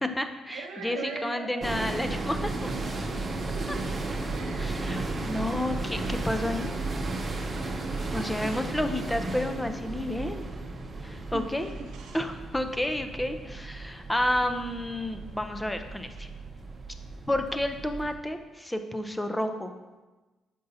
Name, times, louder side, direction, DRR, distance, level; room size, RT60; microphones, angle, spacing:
voice 1, 0.0-2.7 4.6-6.7 8.1-10.4 11.0-11.7 12.1-16.3 17.3-19.7, left 1 dB, 10° left, 7 dB, 0.5 m, -31 dB
voice 2, 0.5-1.9 3.1-3.9 4.3-4.8 8.4-9.7 11.0-12.2, right 3 dB, 85° right, -1 dB, 0.8 m, -41 dB
sound 1, 1.6-18.2, right 2 dB, 30° right, 0.7 m, -34 dB
sound 2, 2.4-17.6, equal, 65° left, 2.0 m, -54 dB
6.9 x 5.3 x 2.6 m, 1.2 s
cardioid pair, 90°, 0 cm